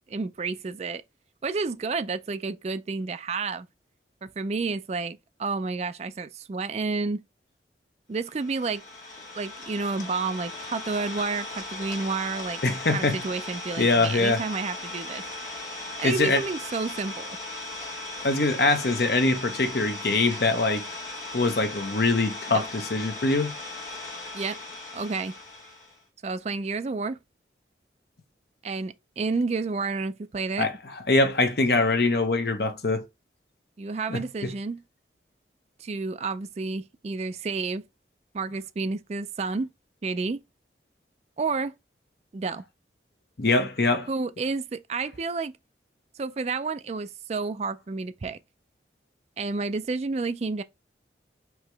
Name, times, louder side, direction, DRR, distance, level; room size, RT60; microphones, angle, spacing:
voice 1, 0.1-1.0 1.4-3.7 4.2-7.2 8.1-8.8 9.3-12.6 12.9-15.2 16.0-17.4 22.5-22.7 24.3-24.6 24.9-25.3 26.2-27.2 28.6-30.7 33.8-34.8 35.8-37.8 38.3-39.7 40.0-40.4 41.4-41.7 42.3-42.6 44.1-45.6 46.2-48.4 49.4-50.6, right 4 dB, 35° right, 0.4 m, -30 dB
Idling, 8.3-26.0, left 2 dB, 45° left, 1.5 m, -38 dB
voice 2, 12.6-13.2 13.8-14.4 16.0-16.4 18.2-20.8 21.3-23.5 30.6-30.7 31.1-33.0 34.1-34.5 43.4-44.1, left 3 dB, 60° left, 0.8 m, -23 dB
4.6 x 2.9 x 3.3 m
head